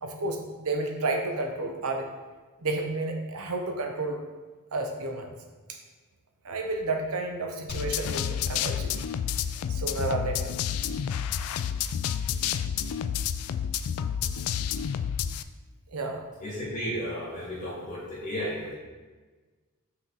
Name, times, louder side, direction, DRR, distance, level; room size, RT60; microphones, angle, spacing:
voice 1, 0.0-2.1 2.6-4.2 4.7-5.3 5.7-5.8 6.4-8.9 9.7-10.5 15.9-16.2, right 2 dB, 85° right, 4 dB, 0.8 m, -31 dB
sound 1, 7.7-15.4, left 8 dB, 70° left, 0.3 m, -30 dB
voice 2, 16.4-18.8, equal, 35° left, -7 dB, 2.0 m, -33 dB
5.9 x 4.6 x 4.0 m, 1.3 s
head